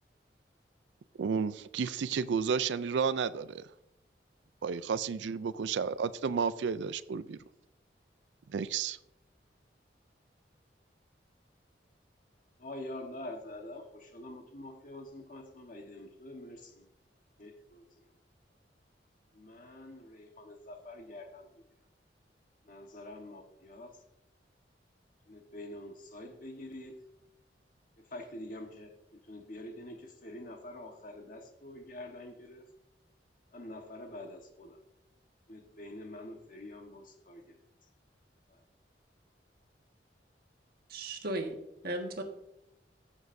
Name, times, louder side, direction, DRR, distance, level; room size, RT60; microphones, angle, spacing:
voice 1, 1.2-3.7 4.6-7.4 8.5-9.0, right 6 dB, 85° right, 15 dB, 0.4 m, -32 dB
voice 2, 12.6-16.9 17.4-18.1 19.3-21.6 22.6-24.0 25.3-27.0 28.0-32.7 33.5-34.8 35.5-37.6 38.5-38.6, left 1 dB, 50° left, 3 dB, 1.3 m, -46 dB
voice 3, 40.9-41.6 41.8-42.2, right 1 dB, 55° right, 3 dB, 1.5 m, -35 dB
16.0 x 7.2 x 2.7 m, 0.84 s
head